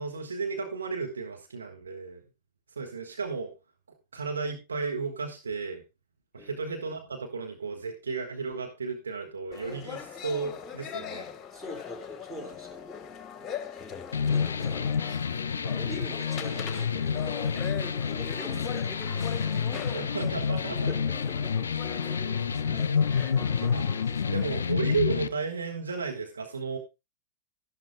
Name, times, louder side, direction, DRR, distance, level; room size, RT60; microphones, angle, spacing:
voice 1, 0.0-2.2 2.7-3.5 4.1-5.8 6.3-11.2 19.9-20.9 23.5-23.8 24.3-26.8, right 4 dB, 75° right, 3 dB, 1.6 m, -33 dB
sound 1, 9.5-24.7, left 7 dB, 25° left, 1.2 m, -40 dB
voice 2, 11.5-12.8 13.4-14.0 14.2-14.8 15.2-19.1 20.7-21.0 21.3-21.4 23.1-23.4, left 1 dB, 20° right, 2 dB, 4.6 m, -44 dB
sound 2, 14.1-25.3, left 6 dB, 70° left, 0.4 m, -29 dB
12.5 x 11.5 x 2.2 m, 0.25 s
figure-of-eight pair, 90°, 0 cm